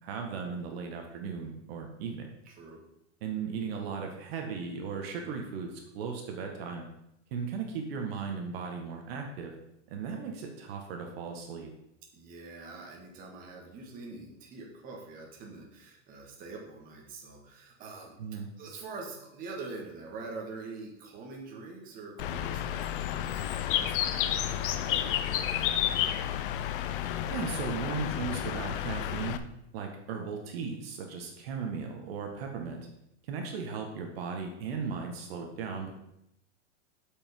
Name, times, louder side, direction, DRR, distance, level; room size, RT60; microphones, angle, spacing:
voice 1, 0.0-2.3 3.2-6.8 7.3-9.5 9.9-11.7 18.2-18.5 27.3-29.4 29.7-32.8 33.2-35.9, right 5 dB, 55° right, 2 dB, 1.5 m, -36 dB
voice 2, 2.4-2.8 12.1-18.1 18.6-26.1, right 3 dB, 25° right, -1 dB, 1.6 m, -45 dB
Bird, 22.2-29.4, left 11 dB, 45° left, 0.6 m, -31 dB
7.6 x 5.4 x 5.3 m, 0.82 s
supercardioid pair, 165°, 36 cm